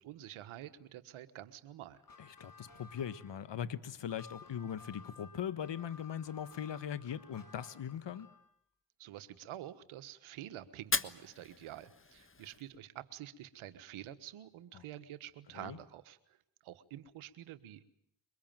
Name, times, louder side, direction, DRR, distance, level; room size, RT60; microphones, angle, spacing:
voice 1, 0.0-2.0 9.0-16.4 16.6-17.8, right 12 dB, 85° right, 12 dB, 1.4 m, -48 dB
sound 1, 1.9-8.5, left 4 dB, 45° left, 6.3 m, -57 dB
voice 2, 2.2-8.3 14.7-14.8 15.5-15.8, left 9 dB, 60° left, 13 dB, 1.6 m, -40 dB
Fire, 10.8-12.8, left 4 dB, 25° left, 1.4 m, -38 dB
23.5 x 21.5 x 9.0 m, 0.70 s
supercardioid pair, 45°, 48 cm